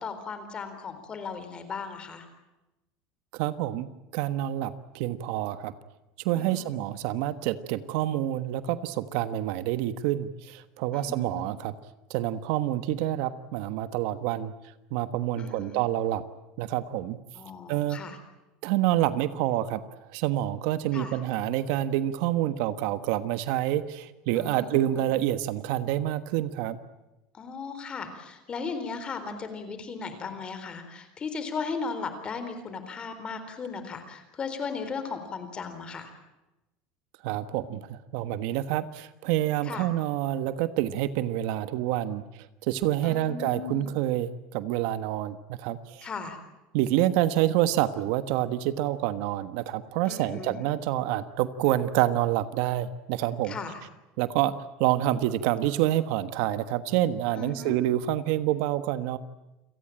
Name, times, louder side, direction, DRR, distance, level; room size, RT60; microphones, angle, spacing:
voice 1, 0.0-2.2 6.3-6.8 10.9-11.4 15.4-15.8 17.4-18.2 20.9-21.2 24.3-25.0 27.3-36.1 39.7-39.9 43.0-43.9 46.0-46.4 50.1-50.6 53.5-53.8 57.4-57.7, left 5 dB, 25° left, 9 dB, 4.0 m, -37 dB
voice 2, 3.3-5.7 6.2-11.7 12.1-14.5 14.9-16.2 16.6-17.2 17.7-18.0 18.6-19.8 20.1-26.8 37.2-42.2 42.6-46.1 46.7-53.6 54.2-54.5 54.8-59.2, right 13 dB, 65° right, 12 dB, 1.3 m, -27 dB
29.0 x 18.5 x 8.8 m, 0.99 s
cardioid pair, 150°, 4 cm